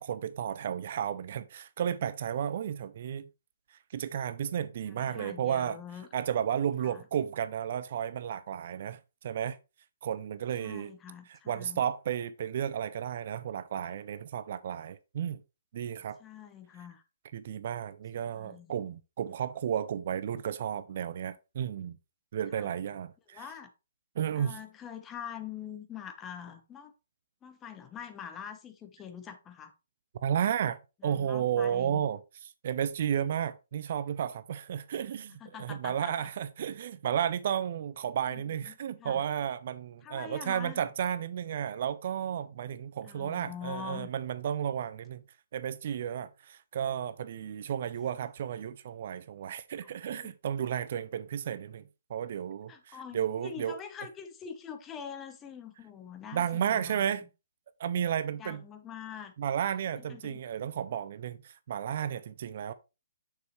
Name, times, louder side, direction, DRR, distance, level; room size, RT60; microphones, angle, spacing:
voice 1, 0.0-3.3 3.9-5.8 6.1-9.6 10.0-10.9 11.3-15.4 15.7-16.2 17.3-22.0 22.3-23.4 24.2-24.6 30.2-32.2 32.6-45.2 45.5-53.8 56.3-57.2 57.8-58.6 59.4-62.7, right 9 dB, 45° right, 0.4 m, -33 dB
voice 2, 4.9-6.1 6.8-7.0 10.6-11.8 16.2-17.0 18.2-18.7 22.5-22.7 23.3-23.7 24.3-26.9 27.4-29.7 31.0-32.0 35.3-36.3 38.3-39.2 40.0-40.8 43.0-44.1 49.8-50.3 52.7-57.1 58.4-59.3 60.0-60.4, left 8 dB, 15° left, 0.9 m, -45 dB
6.5 x 6.5 x 3.1 m
figure-of-eight pair, 130°, 0 cm